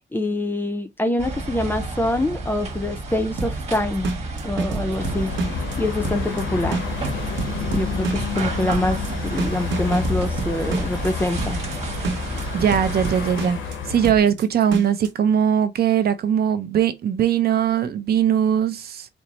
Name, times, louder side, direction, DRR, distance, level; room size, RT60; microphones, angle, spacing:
voice 1, 0.1-4.1 4.4-5.3 5.8-6.8 7.7-11.6, left 1 dB, 10° left, 0.5 m, -25 dB
sound 1, 1.2-13.3, right 2 dB, 35° right, 1.4 m, -31 dB
sound 2, 3.4-15.1, right 4 dB, 75° right, 0.9 m, -29 dB
sound 3, 5.0-14.1, left 6 dB, 80° left, 0.9 m, -31 dB
voice 2, 12.5-13.6 13.9-19.1, right 9 dB, 55° right, 0.5 m, -20 dB
4.6 x 2.1 x 3.8 m
wide cardioid pair, 170°, 19 cm